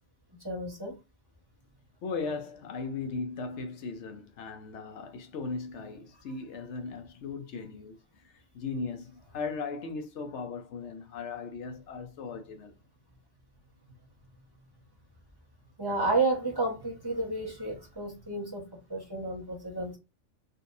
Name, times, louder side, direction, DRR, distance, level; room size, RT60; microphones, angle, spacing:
voice 1, 0.4-1.0 15.8-18.6 18.9-20.0, right 2 dB, 20° right, 1.0 m, -31 dB
voice 2, 2.0-12.7, left 4 dB, 70° left, 0.9 m, -38 dB
3.8 x 2.7 x 2.5 m
omnidirectional pair, 1.2 m